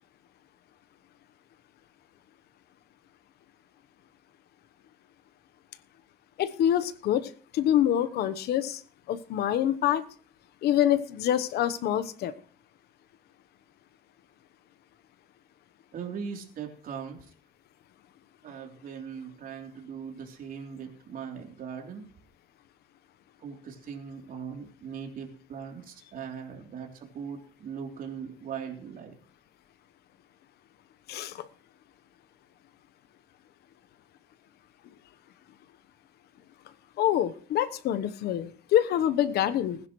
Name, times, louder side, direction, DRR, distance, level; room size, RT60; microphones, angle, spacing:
voice 1, 6.4-8.8 9.1-10.0 10.6-12.3 31.1-31.4 37.0-39.8, left 11 dB, 75° left, 14 dB, 1.1 m, -26 dB
voice 2, 15.9-17.2 18.4-22.1 23.4-29.2, right 7 dB, 55° right, 1 dB, 3.5 m, -40 dB
20.0 x 10.5 x 3.2 m, 0.43 s
cardioid pair, 110°, 17 cm